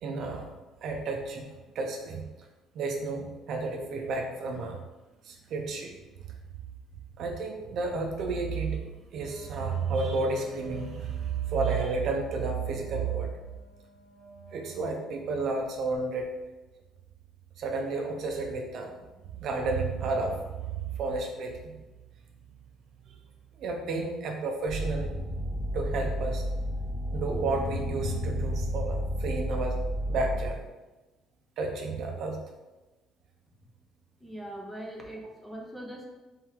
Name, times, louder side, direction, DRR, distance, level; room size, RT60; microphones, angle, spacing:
voice 1, 0.0-0.5 0.8-1.4 1.7-2.2 2.7-4.8 5.2-6.0 7.2-13.3 14.5-16.3 17.6-18.9 19.3-20.5 20.8-21.7 23.1-23.2 23.6-25.1 25.7-26.4 27.1-29.8 30.1-30.6 31.6-32.4, right 3 dB, 65° right, 2 dB, 0.6 m, -31 dB
Wind instrument woodwind instrument, 9.2-15.8, right 2 dB, 20° right, 1.2 m, -53 dB
sound 1, 24.7-30.5, equal, 35° left, 1.1 m, -31 dB
voice 2, 34.2-36.1, right 1 dB, 5° left, -1 dB, 0.9 m, -41 dB
3.4 x 3.0 x 3.7 m, 1.1 s
cardioid pair, 110°, 0 cm